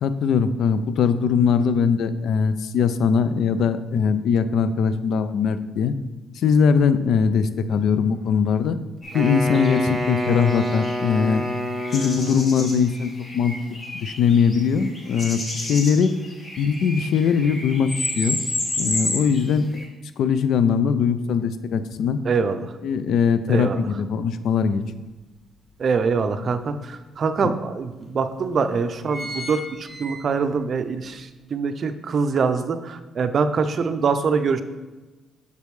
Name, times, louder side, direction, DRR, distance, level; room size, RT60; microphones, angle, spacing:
voice 1, 0.0-5.9 6.4-8.8 9.1-11.4 11.9-13.5 13.9-16.1 16.6-18.4 18.8-19.7 20.2-22.2 22.8-24.8 27.4-27.5, left 6 dB, 75° left, 12 dB, 0.4 m, -21 dB
sound 1, 9.0-19.8, left 2 dB, 35° left, 1.4 m, -31 dB
Wind instrument woodwind instrument, 9.1-12.6, equal, 25° right, 1.2 m, -27 dB
voice 2, 22.2-22.7 23.5-23.9 25.8-34.6, right 5 dB, 50° right, 9 dB, 0.5 m, -24 dB
sound 2, 24.9-25.0 25.4-26.6 27.2-27.3 27.6-27.7 28.3-28.6 28.8-30.6 31.1-31.2, left 1 dB, 5° right, 1.4 m, -36 dB
6.6 x 5.1 x 3.2 m, 1.2 s
cardioid pair, 90°, 0 cm